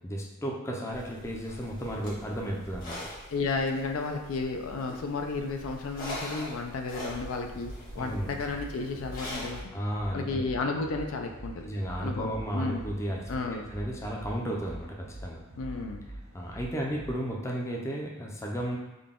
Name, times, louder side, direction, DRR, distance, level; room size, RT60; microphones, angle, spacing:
voice 1, 0.0-3.0 8.0-8.3 9.7-10.5 11.6-15.4 16.3-18.8, equal, 15° left, -2 dB, 0.5 m, -33 dB
sound 1, 0.9-9.6, equal, 45° left, 1.1 m, -43 dB
voice 2, 3.3-9.6 10.1-11.6 12.0-12.8 13.3-13.7 15.6-16.0, left 3 dB, 75° left, 3 dB, 0.4 m, -33 dB
sound 2, 6.9-17.3, right 1 dB, 80° right, 0.7 m, -45 dB
3.8 x 2.2 x 3.6 m, 1.1 s
head